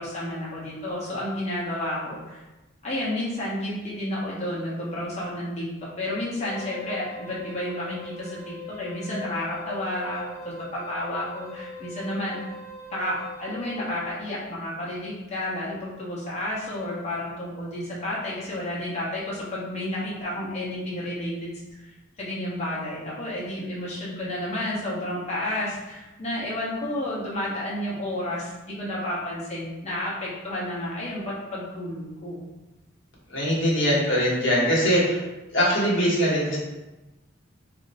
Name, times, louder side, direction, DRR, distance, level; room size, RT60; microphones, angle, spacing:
voice 1, 0.0-2.4 2.8-5.7 6.0-12.4 12.9-32.4 33.7-34.0, left 1 dB, 35° left, -7 dB, 0.9 m, -31 dB
Wind instrument woodwind instrument, 6.3-14.2, left 1 dB, 90° left, 0.7 m, -41 dB
voice 2, 33.3-35.2 35.5-36.6, equal, 65° left, -5 dB, 1.1 m, -22 dB
2.6 x 2.1 x 4.0 m, 1.0 s
head